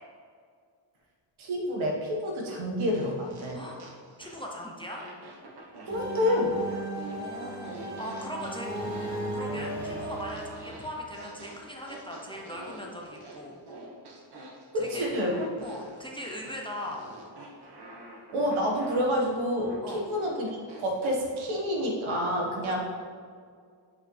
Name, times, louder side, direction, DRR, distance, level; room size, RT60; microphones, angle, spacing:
voice 1, 1.4-3.6 5.9-6.6 14.7-15.5 18.3-20.5 20.8-22.8, left 1 dB, 80° right, -1 dB, 1.5 m, -28 dB
sound 1, 2.9-4.5 4.9-21.2, right 2 dB, 55° right, 1.2 m, -47 dB
voice 2, 4.2-5.0 7.2-8.7 9.3-13.6 14.7-15.1 15.6-17.0 19.8-20.0 22.6-22.8, equal, 10° left, -1 dB, 0.5 m, -39 dB
sound 2, 5.9-11.6, right 1 dB, 10° right, 1.6 m, -36 dB
7.8 x 5.8 x 3.3 m, 2.2 s
wide cardioid pair, 180°, 47 cm